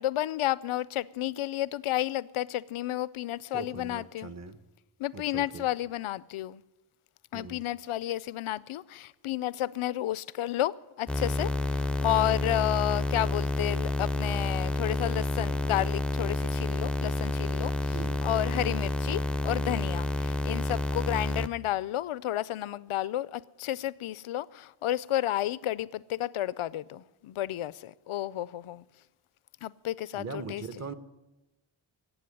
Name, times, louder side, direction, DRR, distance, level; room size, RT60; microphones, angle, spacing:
voice 1, 0.0-4.3 5.0-6.6 7.3-17.9 18.2-28.8 29.6-30.6, left 13 dB, 85° left, 0.6 m, -31 dB
voice 2, 3.5-4.6 5.1-5.7 7.3-7.6 17.9-18.2 30.1-30.9, right 5 dB, 35° right, 1.0 m, -40 dB
sound 1, 11.1-21.5, left 2 dB, ahead, 0.5 m, -29 dB
17.5 x 7.7 x 9.9 m
wide cardioid pair, 105°, 48 cm